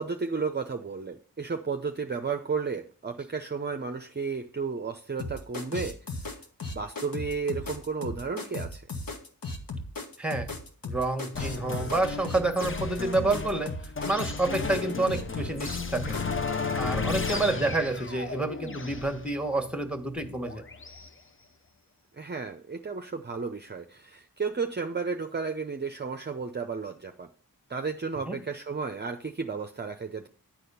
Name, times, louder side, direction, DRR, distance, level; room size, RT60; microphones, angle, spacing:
voice 1, 0.0-6.0 6.3-6.4 6.7-8.8 17.3-17.6 22.1-27.3 27.7-30.3, right 5 dB, 30° right, 6 dB, 0.7 m, -33 dB
sound 1, 5.2-16.3, left 3 dB, 70° left, 1.5 m, -36 dB
voice 2, 10.2-10.5 10.8-16.2 16.7-20.6 28.2-28.4, right 2 dB, 5° right, 7 dB, 1.4 m, -29 dB
sound 2, 11.3-21.1, left 5 dB, 35° left, 0.7 m, -34 dB
10.0 x 4.2 x 6.8 m, 0.43 s
wide cardioid pair, 60°, 37 cm